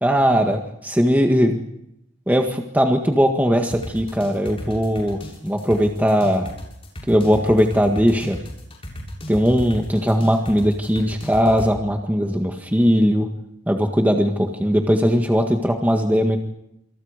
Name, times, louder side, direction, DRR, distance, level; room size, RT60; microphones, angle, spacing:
voice 1, 0.0-1.6 2.3-6.5 7.1-8.4 9.3-13.3 13.7-16.4, equal, 10° right, 3 dB, 1.8 m, -19 dB
sound 1, 3.7-11.7, equal, 30° left, 7.5 m, -34 dB
27.5 x 27.5 x 5.2 m, 0.81 s
head